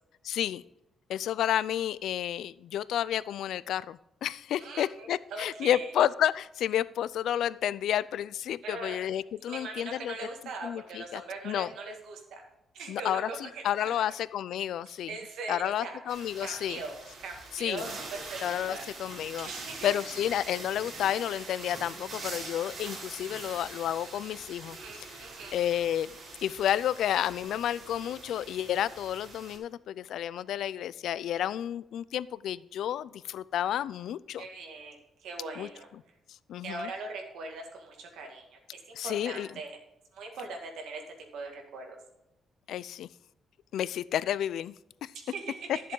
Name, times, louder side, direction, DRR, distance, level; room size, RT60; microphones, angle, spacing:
voice 1, 0.2-0.6 1.1-10.1 10.6-11.7 12.9-15.1 15.5-16.8 17.5-17.8 18.4-19.5 19.8-25.2 25.5-26.1 26.4-34.4 35.6-35.7 36.3-36.9 38.9-39.5 42.7-43.1 43.7-44.7 45.0-45.1, left 11 dB, 75° left, 18 dB, 0.3 m, -31 dB
voice 2, 4.6-5.9 8.6-9.1 9.4-12.4 12.7-14.0 14.9-16.0 16.4-17.0 17.2-18.8 19.4-19.9 24.7-25.6 34.4-35.9 36.6-39.8 40.1-41.0 41.3-42.0 45.3-45.7, right 3 dB, 90° right, 2 dB, 2.0 m, -41 dB
sound 1, 16.1-29.6, right 3 dB, 45° right, 3.6 m, -44 dB
11.5 x 7.5 x 3.8 m, 0.89 s
cardioid pair, 155°, 0 cm